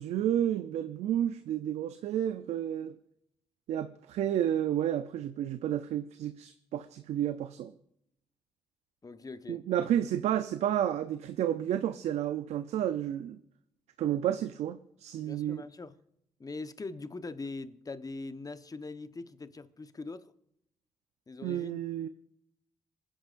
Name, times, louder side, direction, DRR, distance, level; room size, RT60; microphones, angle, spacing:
voice 1, 0.0-3.0 3.7-7.7 9.5-13.4 14.0-15.6 21.4-22.1, right 10 dB, 75° right, 0.6 m, -31 dB
voice 2, 9.0-9.6 15.2-15.9 16.4-20.3 21.3-21.8, left 3 dB, 30° left, 1.1 m, -42 dB
27.0 x 10.0 x 2.6 m
supercardioid pair, 50°, 11 cm